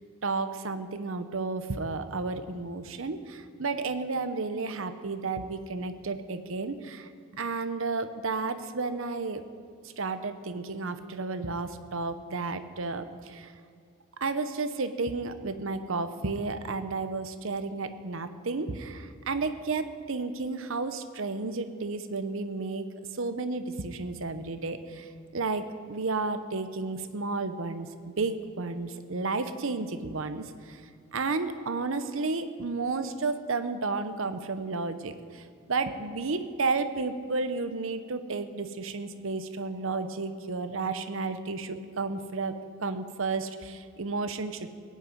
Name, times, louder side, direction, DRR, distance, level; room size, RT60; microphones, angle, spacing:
voice 1, 0.2-9.4 10.0-13.5 14.2-22.9 23.2-25.1 25.3-30.8 31.1-42.5 42.8-44.8, right 3 dB, 65° right, 10 dB, 0.8 m, -32 dB
17.0 x 6.5 x 9.1 m, 2.3 s
head